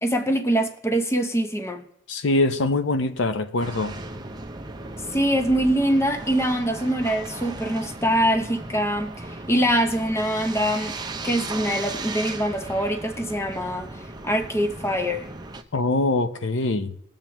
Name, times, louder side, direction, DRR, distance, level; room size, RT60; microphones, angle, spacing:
voice 1, 0.0-1.8 5.1-11.0 11.2-15.3, equal, 15° left, 0.8 m, -24 dB
voice 2, 2.1-3.9 15.7-16.9, left 2 dB, 60° left, 0.6 m, -23 dB
sound 1, 3.6-15.6, right 2 dB, 20° right, 0.6 m, -36 dB
20.5 x 7.3 x 3.0 m
head